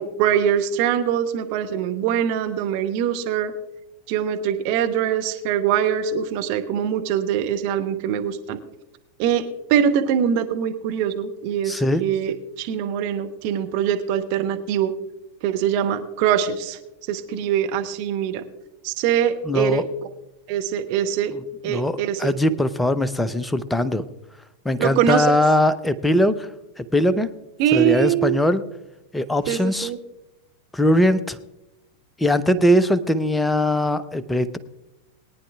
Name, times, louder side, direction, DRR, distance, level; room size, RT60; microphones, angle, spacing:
voice 1, 0.0-3.5 4.1-8.6 9.2-9.4 9.7-14.9 15.4-16.8 17.1-18.4 18.8-19.8 20.5-21.3 21.6-22.3 24.8-25.3 27.6-28.4 29.5-30.0, right 9 dB, 45° right, 6 dB, 0.8 m, -23 dB
voice 2, 11.7-12.0 19.5-19.8 21.7-24.1 24.6-26.5 26.8-27.3 27.7-28.6 29.1-29.9 30.7-31.4 32.2-34.6, left 1 dB, 5° left, 14 dB, 0.6 m, -20 dB
21.5 x 10.0 x 2.4 m, 0.92 s
figure-of-eight pair, 90°, 0 cm